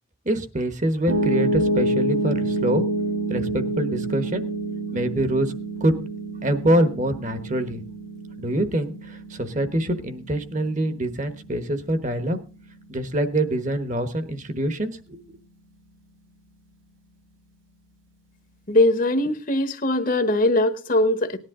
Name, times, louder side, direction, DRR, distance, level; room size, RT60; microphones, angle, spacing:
voice 1, 0.2-2.8 3.3-4.4 4.9-5.5 5.8-6.0 6.4-7.8 8.4-12.4 12.9-15.2, right 1 dB, 35° right, 11 dB, 1.2 m, -25 dB
Piano, 1.1-13.2, right 2 dB, 65° right, 2.7 m, -28 dB
voice 2, 18.7-21.4, left 1 dB, 40° left, 11 dB, 1.1 m, -21 dB
18.5 x 10.5 x 3.7 m, 0.33 s
head